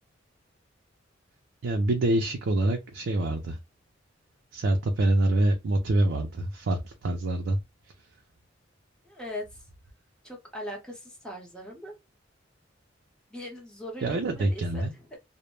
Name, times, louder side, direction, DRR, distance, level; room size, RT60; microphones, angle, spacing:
voice 1, 1.6-3.6 4.5-7.6 14.0-14.9, right 1 dB, 70° right, 0.4 m, -25 dB
voice 2, 9.0-9.4 10.2-11.9 13.3-15.2, left 1 dB, 5° left, 0.9 m, -40 dB
2.1 x 2.1 x 3.0 m
head